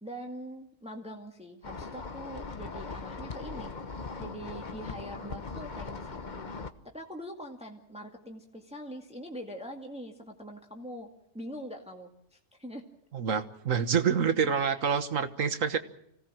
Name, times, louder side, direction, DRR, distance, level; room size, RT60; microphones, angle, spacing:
voice 1, 0.0-3.7 4.2-6.5 6.8-11.1 11.3-12.8 14.8-15.0, equal, 5° right, 2 dB, 2.1 m, -43 dB
sound 1, 1.6-6.7, left 4 dB, 40° left, 1.3 m, -40 dB
voice 2, 13.1-15.8, right 7 dB, 85° right, 11 dB, 1.8 m, -27 dB
26.0 x 17.5 x 7.5 m, 0.75 s
omnidirectional pair, 1.3 m